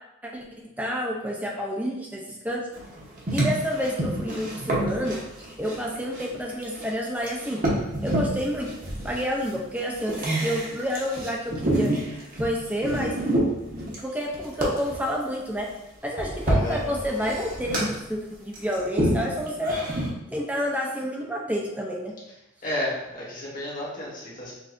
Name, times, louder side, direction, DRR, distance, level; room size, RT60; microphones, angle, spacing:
voice 1, 0.8-2.6 3.3-5.2 5.6-7.6 8.0-8.7 9.0-11.9 12.4-13.1 14.0-15.7 16.0-19.8 20.3-22.1, equal, 10° right, -1 dB, 0.6 m, -29 dB
sound 1, 2.7-6.9 7.2-15.1 16.0-18.0 18.5-20.1, right 1 dB, 45° right, 1.0 m, -28 dB
voice 2, 16.4-16.8 22.6-24.5, left 1 dB, 45° left, -6 dB, 1.4 m, -32 dB
6.3 x 2.7 x 2.6 m, 0.92 s
head